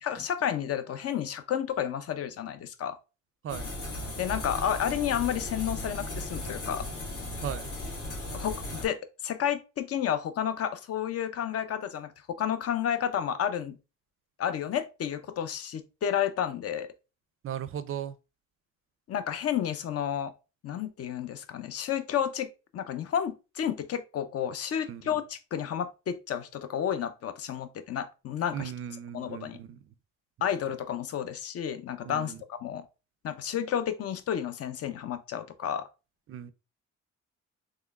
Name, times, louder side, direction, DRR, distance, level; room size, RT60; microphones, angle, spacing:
voice 1, 0.0-3.0 4.2-6.9 8.3-13.8 14.4-16.9 19.1-20.3 20.6-28.7 29.1-29.6 30.4-32.8 33.2-35.9, left 9 dB, 50° left, 0.6 m, -31 dB
sound 1, 3.5-8.9, left 1 dB, 70° left, 2.0 m, -36 dB
voice 2, 7.4-7.7 17.4-18.1 24.9-25.0 28.5-29.8 32.0-32.4 36.3-36.5, right 9 dB, 45° right, 0.4 m, -37 dB
3.7 x 3.2 x 2.3 m
cardioid pair, 90°, 30 cm